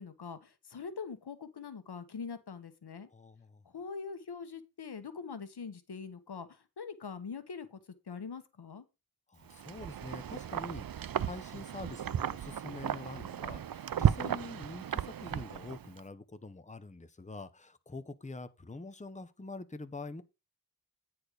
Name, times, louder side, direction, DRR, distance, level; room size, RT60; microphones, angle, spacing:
voice 1, 0.0-3.1 3.7-6.5 6.8-7.8 8.1-8.8, left 5 dB, 90° left, 1.2 m, -43 dB
voice 2, 3.1-3.6 9.3-10.9 11.2-20.2, left 3 dB, 20° left, 0.9 m, -45 dB
Wind, 9.5-16.0, right 9 dB, 60° right, 0.5 m, -34 dB
9.7 x 4.4 x 4.9 m
wide cardioid pair, 55°, 39 cm